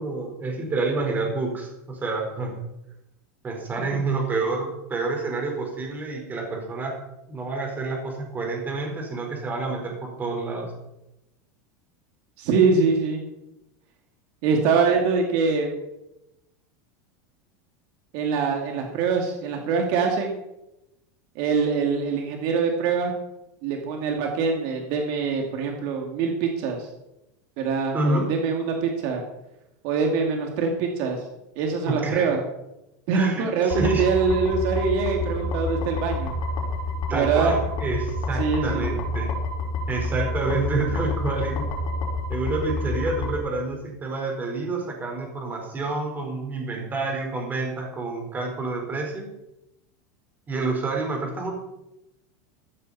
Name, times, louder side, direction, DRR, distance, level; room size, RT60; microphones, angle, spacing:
voice 1, 0.0-2.6 3.4-7.0 7.3-10.7 27.9-28.2 31.9-32.3 33.1-34.0 37.1-39.3 39.9-41.7 42.3-49.3 50.5-51.5, right 3 dB, 20° right, 1 dB, 4.4 m, -28 dB
voice 2, 12.4-13.2 14.4-15.8 18.1-20.4 21.4-23.1 23.6-26.9 27.6-29.2 29.8-31.2 31.6-32.4 33.1-36.3 37.1-37.6 38.4-39.0, right 5 dB, 55° right, 2 dB, 2.5 m, -24 dB
sound 1, 33.7-43.4, left 2 dB, 50° left, 4.9 m, -28 dB
14.5 x 13.0 x 4.3 m, 0.91 s
supercardioid pair, 135°, 9 cm